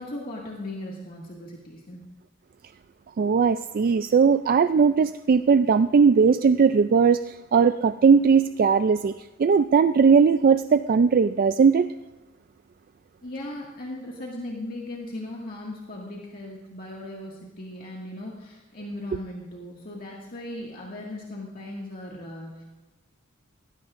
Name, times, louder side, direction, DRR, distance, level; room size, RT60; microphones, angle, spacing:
voice 1, 0.0-2.0 13.2-22.6, left 1 dB, 45° left, -3 dB, 2.0 m, -37 dB
voice 2, 3.2-11.9, right 5 dB, 45° right, 11 dB, 0.3 m, -19 dB
19.0 x 16.5 x 2.6 m, 1.1 s
head